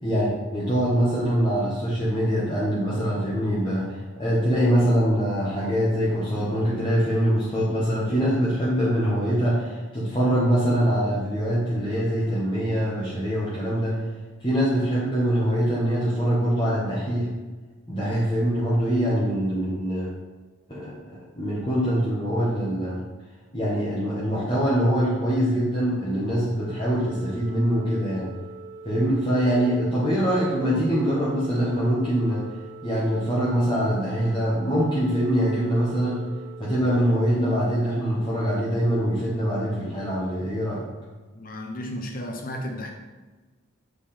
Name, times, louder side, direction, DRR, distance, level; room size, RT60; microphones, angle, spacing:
voice 1, 0.0-14.0 14.4-17.3 17.9-20.1 20.7-23.0 23.5-28.3 28.8-32.4 32.8-36.2 36.6-40.8, equal, 25° left, -8 dB, 1.3 m, -23 dB
Organ, 26.5-37.6, right 3 dB, 55° right, 1.2 m, -44 dB
voice 2, 41.3-42.9, left 1 dB, 45° left, 3 dB, 1.0 m, -33 dB
7.5 x 4.7 x 4.3 m, 1.3 s
head